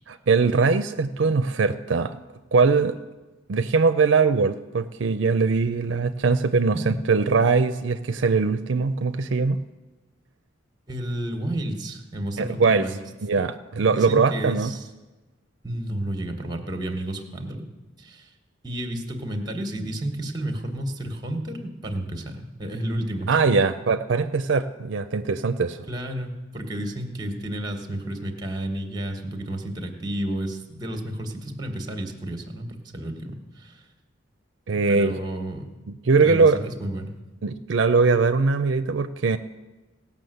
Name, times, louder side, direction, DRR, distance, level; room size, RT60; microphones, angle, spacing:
voice 1, 0.1-2.2 2.5-2.9 3.5-9.6 12.4-12.9 13.2-14.7 23.3-25.8 34.7-35.1 35.9-36.6 37.4-39.4, right 4 dB, 70° right, 10 dB, 0.5 m, -21 dB
voice 2, 10.9-13.0 13.9-14.9 15.6-17.6 18.0-18.3 18.6-23.4 25.9-33.8 34.9-35.7 36.2-37.1, right 1 dB, 20° right, 5 dB, 1.2 m, -31 dB
17.0 x 5.9 x 7.8 m, 1.2 s
head